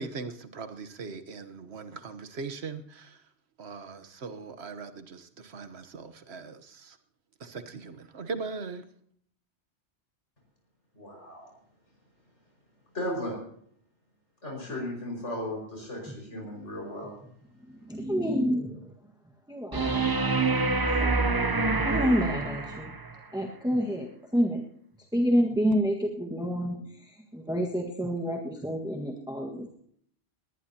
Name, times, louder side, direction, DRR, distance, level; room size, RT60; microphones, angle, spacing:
voice 1, 0.0-3.2 3.6-7.0 7.4-8.8, right 4 dB, 65° right, 9 dB, 1.4 m, -40 dB
voice 2, 10.9-11.5 12.9-13.3 14.4-17.1, left 1 dB, 90° left, -2 dB, 5.8 m, -35 dB
voice 3, 17.7-18.9 19.5-20.1 21.0-21.2 21.8-22.9 23.3-24.6 25.1-29.7, equal, 5° right, -1 dB, 1.6 m, -28 dB
sound 1, 19.7-23.1 25.7-25.8, right 3 dB, 20° right, 0.7 m, -26 dB
20.0 x 19.0 x 2.9 m, 0.66 s
omnidirectional pair, 1.2 m